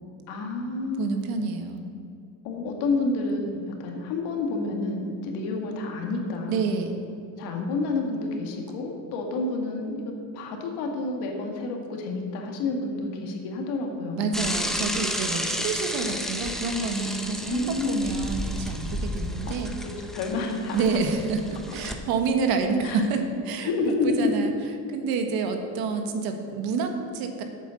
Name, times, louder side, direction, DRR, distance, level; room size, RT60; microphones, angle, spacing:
voice 1, 0.3-1.2 2.4-6.7 7.4-14.4 17.5-18.2 19.5-19.6 19.8-21.0 22.8-23.0 23.7-24.3, left 3 dB, 80° left, 2 dB, 2.0 m, -29 dB
voice 2, 1.0-1.9 6.5-7.0 14.2-19.7 20.7-23.7 24.0-24.5 24.9-27.4, right 4 dB, 65° right, 5 dB, 1.3 m, -28 dB
Bicycle / Mechanisms, 14.3-21.9, equal, ahead, 0.6 m, -32 dB
8.4 x 8.0 x 6.4 m, 2.5 s
cardioid pair, 155°, 39 cm